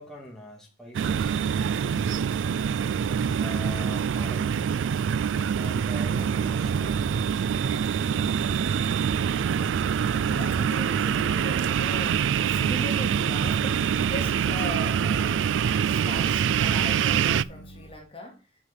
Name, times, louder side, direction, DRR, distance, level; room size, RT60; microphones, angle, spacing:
voice 1, 0.0-1.4 3.1-4.6 5.5-7.2 11.2-11.3 12.8-12.9, equal, 5° left, 2.1 m, -43 dB
sound 1, 0.9-17.4, right 7 dB, 90° right, 0.3 m, -25 dB
sound 2, 6.2-17.9, left 1 dB, 60° left, 1.6 m, -49 dB
voice 2, 10.3-15.5 15.8-18.4, left 1 dB, 30° left, 2.2 m, -39 dB
6.1 x 6.0 x 5.9 m
head